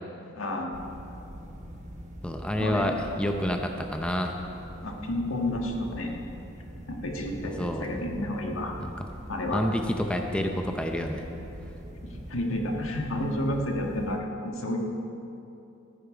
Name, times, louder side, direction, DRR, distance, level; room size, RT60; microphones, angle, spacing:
voice 1, 0.3-0.8 2.6-2.9 4.8-6.1 6.9-8.7 9.3-9.6 12.0-14.8, left 1 dB, 80° left, 1 dB, 1.6 m, -31 dB
sound 1, 0.7-14.2, equal, 35° right, 1.1 m, -43 dB
voice 2, 2.2-4.4 7.4-7.8 8.8-9.1 9.5-11.2, equal, 5° left, 3 dB, 0.6 m, -28 dB
14.5 x 9.5 x 4.9 m, 2.9 s
head